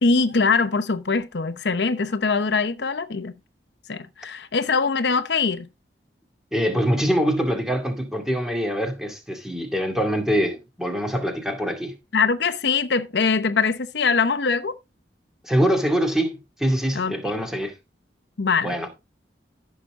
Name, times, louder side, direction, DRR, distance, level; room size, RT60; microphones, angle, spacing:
voice 1, 0.0-3.3 3.9-5.7 12.1-14.8 16.9-17.1 18.4-18.9, left 4 dB, 70° left, 0.8 m, -22 dB
voice 2, 6.5-12.0 15.4-17.7 18.6-18.9, equal, 5° right, 2.2 m, -24 dB
14.5 x 6.6 x 3.6 m
head